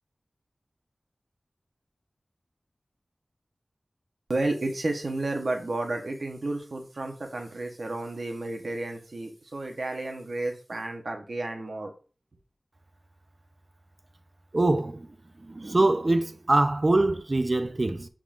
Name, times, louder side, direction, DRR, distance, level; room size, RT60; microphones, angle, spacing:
voice 1, 4.3-11.9, right 2 dB, 75° right, 1.0 m, -32 dB
voice 2, 14.5-15.1 15.5-18.1, right 2 dB, 50° right, 0.5 m, -24 dB
5.9 x 3.7 x 2.5 m
wide cardioid pair, 45°, 0 cm